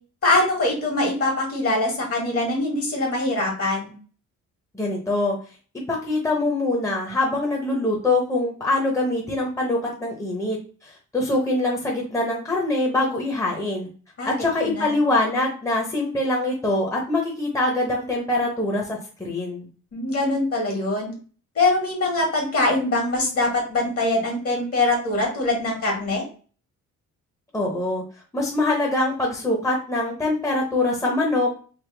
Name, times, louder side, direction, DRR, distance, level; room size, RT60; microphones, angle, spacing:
voice 1, 0.2-3.9 14.2-15.0 19.9-21.1 21.5-26.2, left 2 dB, 50° left, 0 dB, 1.7 m, -23 dB
voice 2, 4.7-5.4 5.9-13.9 14.2-19.7 27.5-28.0 28.3-31.5, left 2 dB, 10° left, -1 dB, 0.8 m, -24 dB
3.4 x 2.1 x 3.3 m, 0.39 s
cardioid pair, 90°, 30 cm